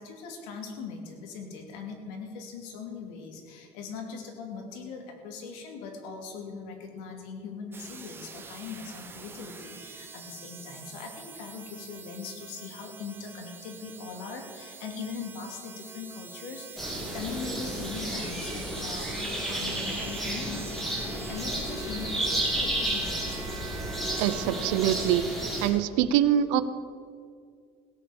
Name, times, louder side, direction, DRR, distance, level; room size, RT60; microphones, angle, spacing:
voice 1, 0.0-19.2 19.5-23.2, left 5 dB, 90° left, 3 dB, 2.7 m, -40 dB
sound 1, 7.7-25.6, right 5 dB, 15° right, 1.0 m, -45 dB
sound 2, 16.8-25.7, right 1 dB, ahead, 2.8 m, -32 dB
voice 2, 24.2-25.2 25.6-26.6, right 11 dB, 90° right, 14 dB, 0.8 m, -24 dB
16.5 x 8.4 x 7.2 m, 2.2 s
cardioid pair, 170°, 14 cm